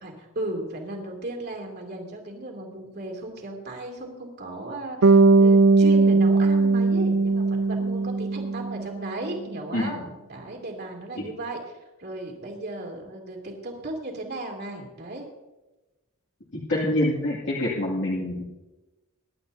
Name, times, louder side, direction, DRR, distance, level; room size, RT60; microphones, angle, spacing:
voice 1, 0.0-11.6 12.0-15.2, right 2 dB, 45° right, 1 dB, 2.9 m, -36 dB
Bass guitar, 5.0-9.1, right 3 dB, 85° right, 0.7 m, -19 dB
voice 2, 16.5-18.4, left 1 dB, 55° left, -6 dB, 2.5 m, -26 dB
23.5 x 11.5 x 2.8 m, 1.1 s
head